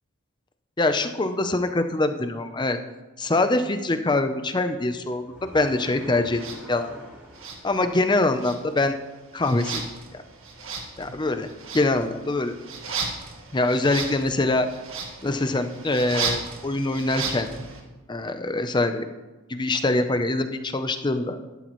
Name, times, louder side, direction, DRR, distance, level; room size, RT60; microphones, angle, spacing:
voice 1, 0.8-2.8 3.2-6.4 6.7-6.9 7.6-8.9 9.3-9.8 10.1-10.2 11.0-11.5 11.7-12.5 13.5-14.7 15.2-17.5 18.1-19.1 19.5-21.4, left 2 dB, 20° left, 9 dB, 0.6 m, -24 dB
sound 1, 4.3-13.3, equal, 10° right, 3.7 m, -49 dB
sound 2, 6.3-6.6 7.3-8.1 8.3-17.8, right 4 dB, 65° right, 1.7 m, -35 dB
12.5 x 12.0 x 3.1 m, 1.2 s
head